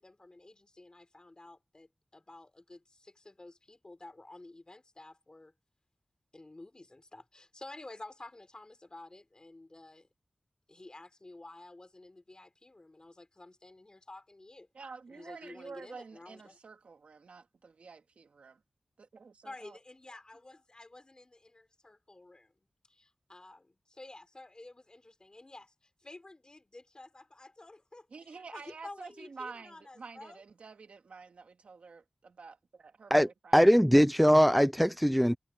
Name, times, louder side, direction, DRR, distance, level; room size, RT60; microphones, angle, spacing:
voice 1, 0.0-5.5 6.3-10.1 10.7-14.7 15.1-16.6 19.4-30.4, left 2 dB, 40° left, 3.8 m, -51 dB
voice 2, 14.7-18.6 19.0-19.8 28.1-33.6, right 4 dB, 90° right, 2.1 m, -49 dB
voice 3, 33.1-35.4, equal, ahead, 0.4 m, -22 dB
cardioid pair, 40°, 2 cm